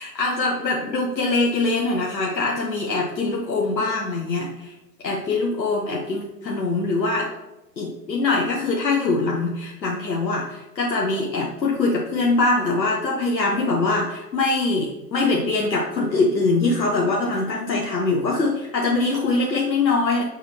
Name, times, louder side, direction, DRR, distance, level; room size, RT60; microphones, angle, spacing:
voice 1, 0.0-4.7 5.0-7.3 7.8-20.2, left 3 dB, 85° left, -1 dB, 1.1 m, -23 dB
6.5 x 4.6 x 3.3 m, 0.95 s
figure-of-eight pair, 125°, 49 cm